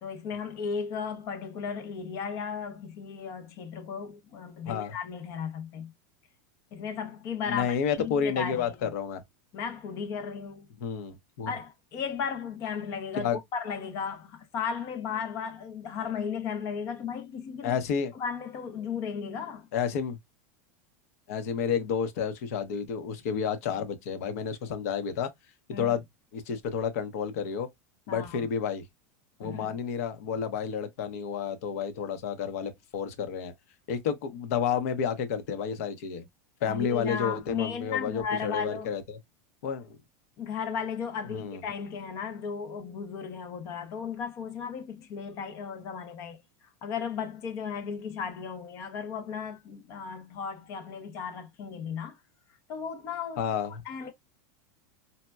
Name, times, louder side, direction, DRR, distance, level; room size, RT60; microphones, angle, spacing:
voice 1, 0.0-5.9 6.7-8.7 9.5-10.7 11.5-17.8 18.2-19.7 25.7-26.0 28.1-28.5 29.4-29.8 36.7-38.9 40.4-46.4 46.8-52.2 52.7-53.4 53.9-54.1, left 6 dB, 35° left, 0.5 m, -35 dB
voice 2, 7.5-9.2 10.8-11.5 13.2-13.4 17.6-18.1 19.7-20.2 21.3-25.3 25.7-26.0 26.3-27.7 28.1-28.8 29.4-33.5 33.9-36.3 36.6-39.2 39.6-39.9 41.3-41.6 53.4-53.8, left 7 dB, 65° left, 0.8 m, -30 dB
4.1 x 2.2 x 2.2 m
supercardioid pair, 165°, 9 cm